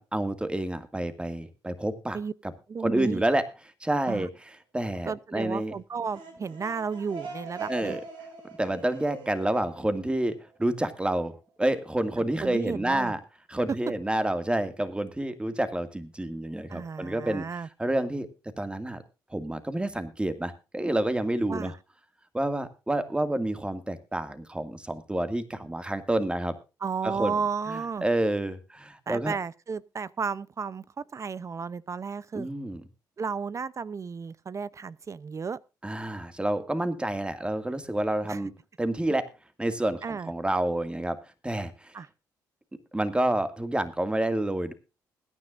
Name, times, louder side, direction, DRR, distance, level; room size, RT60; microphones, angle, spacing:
voice 1, 0.0-2.2 2.8-3.4 3.8-4.3 4.7-5.7 7.7-8.0 8.6-13.2 13.5-17.5 17.8-18.3 18.6-19.0 19.3-21.7 22.3-26.6 27.0-27.3 27.7-29.4 32.3-32.8 35.8-39.3 39.6-41.2 41.4-42.0 42.9-44.7, right 1 dB, 15° right, 2.1 m, -29 dB
voice 2, 2.7-3.2 4.1-4.3 5.0-8.0 12.4-13.1 16.7-17.7 21.5-21.8 26.8-28.0 29.1-32.5 33.2-35.6 38.3-38.4 40.0-40.3 41.9-42.1, right 5 dB, 40° right, 0.6 m, -33 dB
sound 1, 5.9-10.6, right 4 dB, 85° right, 5.0 m, -42 dB
21.0 x 9.8 x 2.5 m
supercardioid pair, 65°, 8 cm